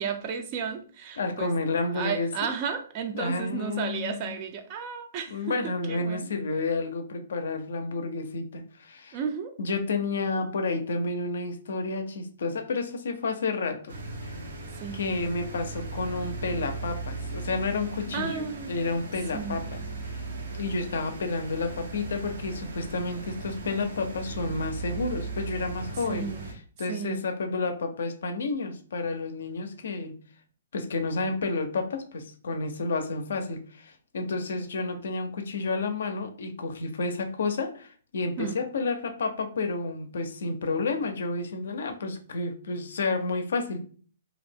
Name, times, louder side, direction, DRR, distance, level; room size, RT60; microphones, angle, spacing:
voice 1, 0.0-1.5 1.9-5.6 5.9-6.3 9.1-9.5 14.8-15.1 18.1-18.8 19.3-19.6 26.1-26.4 26.9-27.3 38.4-38.6, right 6 dB, 35° right, 7 dB, 0.4 m, -33 dB
voice 2, 1.2-2.5 3.1-4.4 5.3-9.2 9.6-14.0 14.2-14.3 14.9-20.2 20.5-26.3 26.8-30.1 30.7-43.8, left 3 dB, 75° left, 6 dB, 0.4 m, -30 dB
sound 1, 13.9-26.5, right 3 dB, 80° right, 0.7 m, -37 dB
2.4 x 2.0 x 3.3 m, 0.44 s
hypercardioid pair, 150°, 0 cm